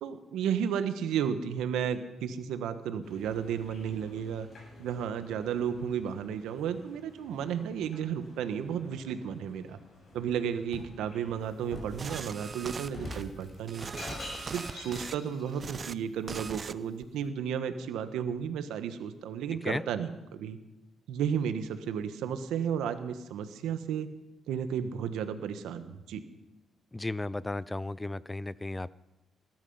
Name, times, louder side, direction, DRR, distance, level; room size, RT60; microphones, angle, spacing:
voice 1, 0.0-4.5 4.8-9.8 10.1-13.9 14.4-20.6 21.1-24.1 24.5-26.2, right 8 dB, 85° right, 9 dB, 1.4 m, -33 dB
sound 1, 3.0-13.1, left 2 dB, 50° left, 7.4 m, -56 dB
Shatter, 10.1-11.0 11.7-12.0 12.9-15.5, left 1 dB, 35° left, 5.4 m, -42 dB
sound 2, 12.0-13.2 13.7-15.2 15.5-15.9 16.3-16.7 17.0-17.3, right 5 dB, 40° right, 0.6 m, -40 dB
voice 2, 26.9-28.9, left 2 dB, 15° left, 20 dB, 0.4 m, -34 dB
20.0 x 12.5 x 5.6 m, 1.0 s
cardioid pair, 90°, 0 cm